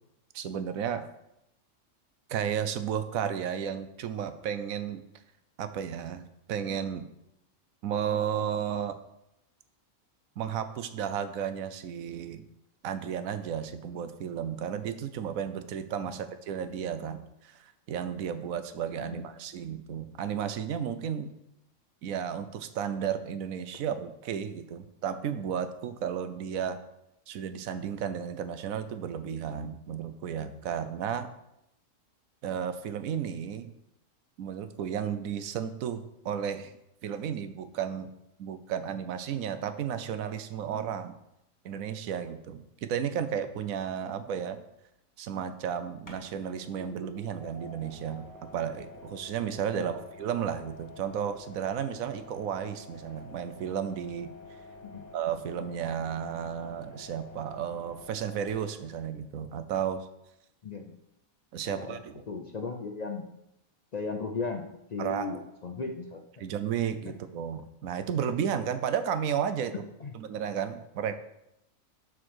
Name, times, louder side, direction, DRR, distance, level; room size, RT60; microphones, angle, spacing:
voice 1, 0.3-1.0 2.3-5.0 5.6-7.1 7.8-9.0 10.4-12.4 12.8-21.3 22.0-26.8 27.3-31.3 32.4-33.7 34.4-36.7 37.0-38.1 38.4-41.2 41.6-44.6 45.2-48.2 48.5-54.3 55.1-60.1 61.5-62.1 65.0-65.4 66.4-69.7 70.1-71.2, right 8 dB, 75° right, 10 dB, 1.1 m, -33 dB
sound 1, 46.1-59.0, left 2 dB, 15° left, 1.4 m, -49 dB
voice 2, 60.6-60.9 61.6-63.3 63.9-66.4 69.7-70.1, left 4 dB, 55° left, 4 dB, 0.4 m, -37 dB
7.3 x 4.5 x 6.2 m, 0.85 s
omnidirectional pair, 1.5 m